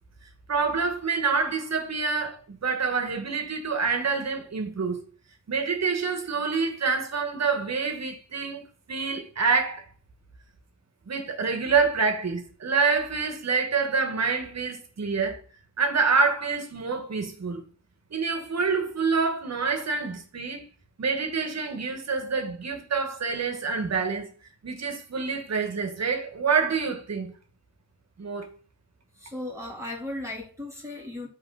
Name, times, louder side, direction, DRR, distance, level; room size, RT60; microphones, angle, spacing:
voice 1, 0.5-5.0 5.5-8.6 8.9-9.8 11.1-15.4 15.8-17.6 18.1-20.6 21.0-24.3 24.6-27.3 28.2-28.5, right 5 dB, 50° right, 1.6 m, -27 dB
voice 2, 29.2-31.3, left 1 dB, 10° right, 2.2 m, -36 dB
5.5 x 3.6 x 4.8 m
cardioid pair, 55°, 33 cm